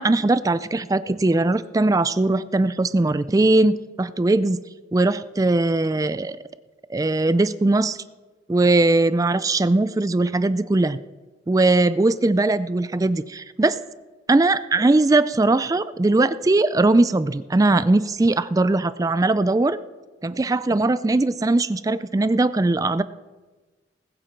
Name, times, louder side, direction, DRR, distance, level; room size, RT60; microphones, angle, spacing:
voice 1, 0.0-4.6 4.9-6.4 6.9-8.0 8.5-11.0 11.5-13.8 14.3-19.8 20.2-23.0, right 2 dB, 20° right, 15 dB, 0.3 m, -20 dB
20.0 x 7.8 x 4.6 m, 1.2 s
head